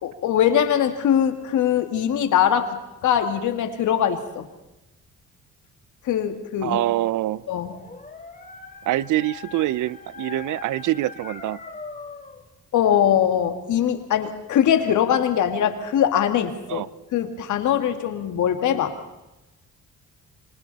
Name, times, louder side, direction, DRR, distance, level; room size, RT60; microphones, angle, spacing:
voice 1, 0.0-2.7 3.0-4.5 6.1-6.8 7.5-7.7 12.7-16.8 17.1-18.9, left 9 dB, 75° left, 7 dB, 2.3 m, -21 dB
voice 2, 6.6-7.4 8.9-11.6 16.7-16.9, right 15 dB, 80° right, 20 dB, 0.7 m, -25 dB
Dog, 7.4-12.4, left 5 dB, 25° left, 2.9 m, -41 dB
26.0 x 25.5 x 4.2 m, 0.96 s
cardioid pair, 90°, 30 cm